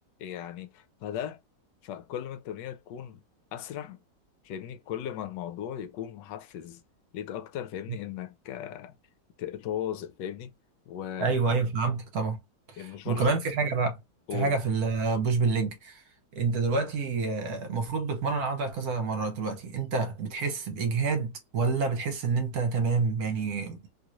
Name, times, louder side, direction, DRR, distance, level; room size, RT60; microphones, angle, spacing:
voice 1, 0.2-1.4 1.8-3.2 3.5-4.0 4.4-6.8 7.1-9.0 9.4-10.5 10.9-11.4 12.8-13.4 14.3-14.6, left 10 dB, 80° left, 1.2 m, -37 dB
voice 2, 11.2-12.4 12.7-14.0 14.3-16.0 16.3-23.8, right 4 dB, 60° right, 1.2 m, -28 dB
3.0 x 3.0 x 2.4 m
omnidirectional pair, 1.9 m